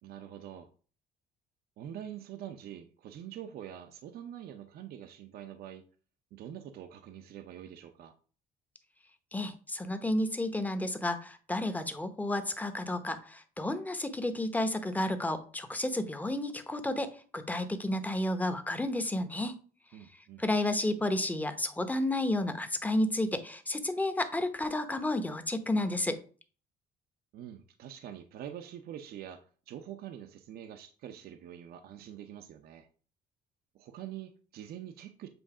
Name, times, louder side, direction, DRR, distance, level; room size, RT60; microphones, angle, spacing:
voice 1, 0.0-0.7 1.8-5.8 6.3-8.1 19.9-20.4 27.3-32.9 33.7-35.3, right 10 dB, 65° right, 7 dB, 0.7 m, -45 dB
voice 2, 9.3-19.5 20.4-26.2, left 1 dB, 10° left, 8 dB, 0.8 m, -31 dB
7.8 x 2.6 x 4.8 m, 0.39 s
cardioid pair, 110°, 17 cm